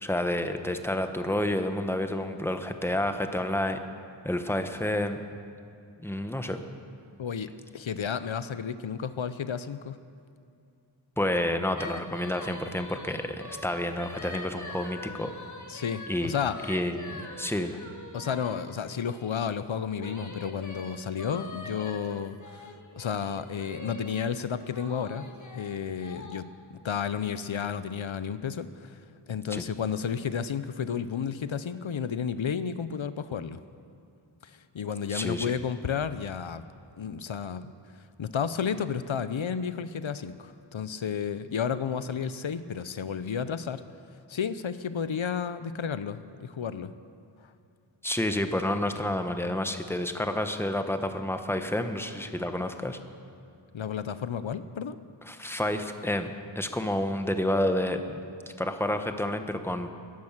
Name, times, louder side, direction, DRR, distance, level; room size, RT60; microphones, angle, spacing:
voice 1, 0.0-3.8 4.2-5.2 6.0-6.6 11.2-15.3 16.1-16.4 16.7-17.8 29.5-29.6 35.1-35.5 48.0-53.0 55.3-58.2 58.6-59.9, left 1 dB, 5° left, 7 dB, 1.1 m, -29 dB
voice 2, 7.2-10.0 15.7-16.6 18.1-25.3 25.5-26.5 26.8-29.0 29.3-33.6 34.4-36.6 37.0-37.7 38.2-43.8 44.3-46.9 47.4-47.5 53.7-55.0, left 7 dB, 80° left, 13 dB, 0.7 m, -32 dB
sound 1, 11.8-19.4 20.0-24.2 24.7-26.4, left 2 dB, 40° left, 1.7 m, -43 dB
17.5 x 10.5 x 7.3 m, 2.5 s
wide cardioid pair, 45°, 46 cm